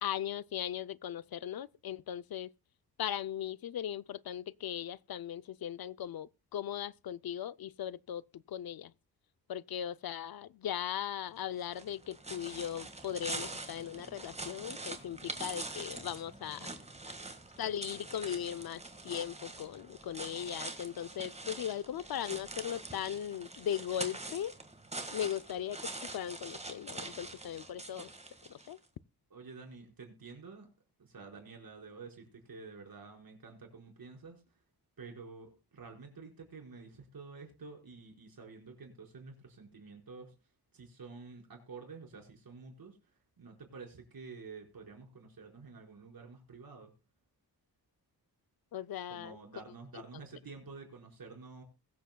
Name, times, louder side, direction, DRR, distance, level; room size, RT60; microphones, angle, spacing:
voice 1, 0.0-2.5 3.0-8.9 9.5-16.7 17.6-24.6 25.1-28.1 28.5-28.8 48.7-49.4, left 10 dB, 65° left, 0.5 m, -38 dB
sound 1, 11.6-28.8, right 2 dB, 15° right, 1.6 m, -44 dB
voice 2, 29.3-30.7 31.0-34.4 35.0-40.3 40.7-43.0 43.4-46.9 49.1-51.6, right 4 dB, 65° right, 4.9 m, -50 dB
22.0 x 8.0 x 2.2 m
wide cardioid pair, 145°, 38 cm